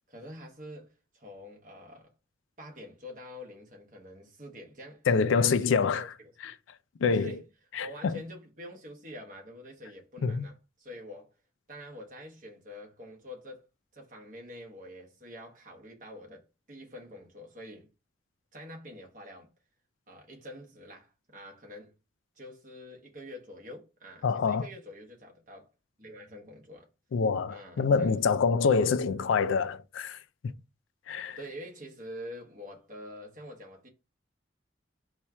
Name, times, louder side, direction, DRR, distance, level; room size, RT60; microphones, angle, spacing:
voice 1, 0.1-2.1 2.6-6.1 6.4-6.5 7.1-7.4 7.8-11.3 11.7-13.7 13.9-17.9 18.5-19.5 20.1-21.9 22.4-25.7 26.0-26.9 27.5-28.2 31.4-33.9, left 1 dB, 40° right, 1.1 m, -46 dB
voice 2, 5.1-6.1 6.4-6.5 7.0-7.3 7.7-8.2 10.2-10.5 24.2-24.7 27.1-30.2 31.1-31.4, left 5 dB, 85° left, 0.4 m, -26 dB
4.2 x 2.4 x 4.3 m
head